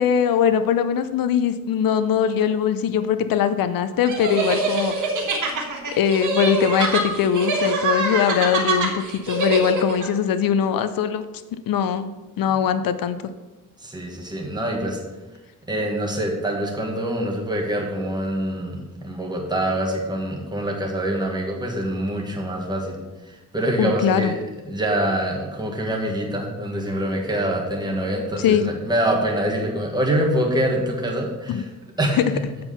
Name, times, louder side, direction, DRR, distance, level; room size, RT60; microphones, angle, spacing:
voice 1, 0.0-5.0 6.0-11.2 11.7-12.1 12.4-13.3 23.8-24.3 28.4-28.7 31.5-31.6, left 8 dB, 80° left, 11 dB, 0.5 m, -21 dB
sound 1, 4.1-10.1, right 2 dB, 60° right, 1.6 m, -24 dB
voice 2, 13.8-15.0 15.7-24.4 24.7-31.7 32.0-32.4, right 1 dB, 10° right, -1 dB, 1.4 m, -25 dB
7.6 x 4.5 x 6.9 m, 1.1 s
wide cardioid pair, 160°, 34 cm